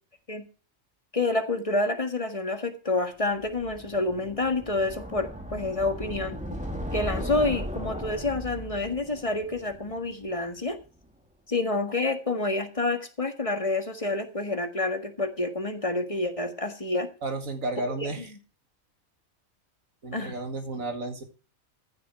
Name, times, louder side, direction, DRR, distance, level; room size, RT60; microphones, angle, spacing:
voice 1, 1.1-6.4 6.9-10.8 11.5-17.1 18.2-18.3 20.1-20.3, left 2 dB, 25° left, 6 dB, 1.8 m, -28 dB
sound 1, 3.4-10.5, equal, 5° right, 2.2 m, -37 dB
voice 2, 17.2-18.3 20.0-21.2, right 2 dB, 75° right, 6 dB, 2.5 m, -32 dB
14.5 x 6.6 x 5.9 m, 0.35 s
omnidirectional pair, 1.4 m